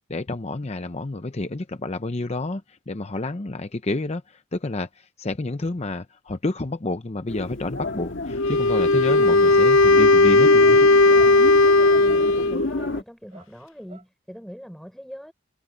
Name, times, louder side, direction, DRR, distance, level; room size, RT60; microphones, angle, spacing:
voice 1, 0.1-10.9, left 2 dB, 30° left, 0.7 m, -29 dB
sound 1, 7.3-13.0, left 2 dB, 65° left, 1.7 m, -31 dB
Wind instrument woodwind instrument, 8.3-12.7, left 2 dB, 90° left, 0.7 m, -16 dB
sound 2, 8.9-9.2 9.4-9.7 10.0-10.2 10.5-10.7 11.1-11.2 11.6-11.8 12.2-12.4 12.8-12.9 13.3-13.5 13.9-14.1, right 3 dB, 35° right, 6.0 m, -49 dB
voice 2, 12.0-15.3, equal, ahead, 4.5 m, -42 dB
head